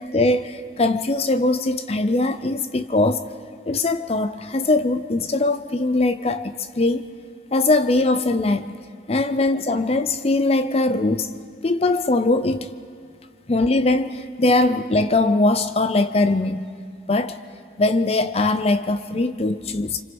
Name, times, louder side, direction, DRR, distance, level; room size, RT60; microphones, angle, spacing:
voice 1, 0.0-3.3 3.7-7.1 7.5-8.7 9.1-11.3 11.6-12.7 13.5-16.7 17.1-17.4 17.8-20.0, left 2 dB, 35° left, 0.6 m, -21 dB
28.0 x 25.5 x 5.3 m
head